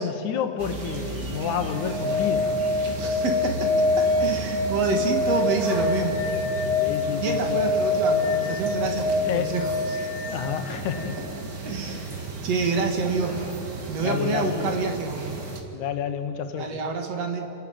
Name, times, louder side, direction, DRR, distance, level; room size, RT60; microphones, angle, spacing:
voice 1, 0.0-2.6 6.8-7.8 9.2-9.6 10.3-11.2 11.8-12.3 14.0-14.8 15.7-16.8, left 8 dB, 85° left, 8 dB, 2.6 m, -30 dB
sound 1, 0.6-15.6, right 3 dB, 35° right, 2.1 m, -35 dB
sound 2, 1.3-11.2 13.5-13.6, left 3 dB, 85° right, 6.5 m, -26 dB
voice 2, 3.0-6.2 7.2-10.1 11.6-12.2 12.4-13.4 13.9-15.3 16.6-17.4, right 4 dB, 60° right, 3 dB, 3.1 m, -28 dB
29.5 x 11.0 x 8.8 m, 2.9 s
omnidirectional pair, 3.3 m